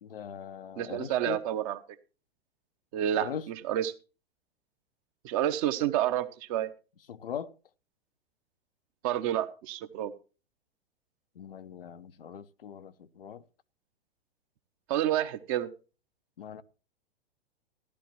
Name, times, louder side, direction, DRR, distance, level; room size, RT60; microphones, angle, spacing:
voice 1, 0.0-1.4 3.1-3.5 7.1-7.6 11.4-13.4 16.4-16.6, left 8 dB, 65° left, 0.7 m, -40 dB
voice 2, 0.8-1.8 2.9-3.9 5.2-6.7 9.0-10.1 14.9-15.7, right 11 dB, 35° right, 1.0 m, -29 dB
15.5 x 11.5 x 3.0 m
figure-of-eight pair, 105°, 31 cm